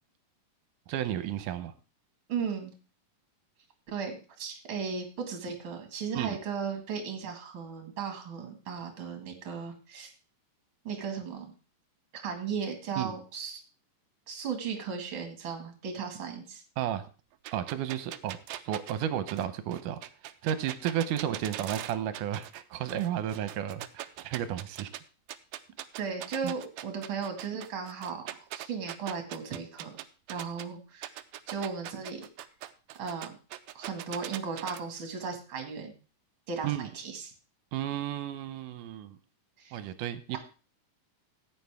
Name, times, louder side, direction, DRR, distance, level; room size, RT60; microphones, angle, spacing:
voice 1, 0.9-1.7 6.2-6.4 13.0-13.1 16.8-17.1 17.5-20.0 20.4-24.9 26.4-26.5 36.6-36.9 37.7-39.2 39.7-40.4, right 10 dB, 75° right, 11 dB, 2.2 m, -33 dB
voice 2, 2.3-2.7 3.9-10.1 10.8-11.5 12.1-13.6 14.3-16.6 26.0-28.3 28.5-30.0 30.3-31.1 31.5-32.2 33.0-33.4 33.7-35.9 36.5-37.3 39.6-39.8 40.3-40.4, right 6 dB, 40° right, 4 dB, 2.3 m, -36 dB
sound 1, 17.4-22.6 22.9-25.0 25.3-30.6 31.0-34.8, right 13 dB, 90° right, 1.6 m, -41 dB
14.0 x 9.3 x 3.5 m, 0.35 s
omnidirectional pair, 4.0 m